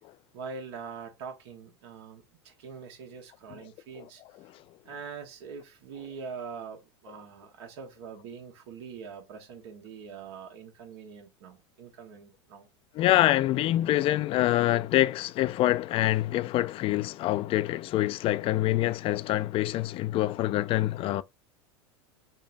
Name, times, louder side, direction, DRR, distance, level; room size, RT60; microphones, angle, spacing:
voice 1, 0.3-4.2 4.8-12.7, right 5 dB, 65° right, 1.2 m, -43 dB
voice 2, 12.9-21.2, left 15 dB, 40° left, 0.4 m, -25 dB
5.2 x 2.2 x 2.5 m
hypercardioid pair, 90°, 15 cm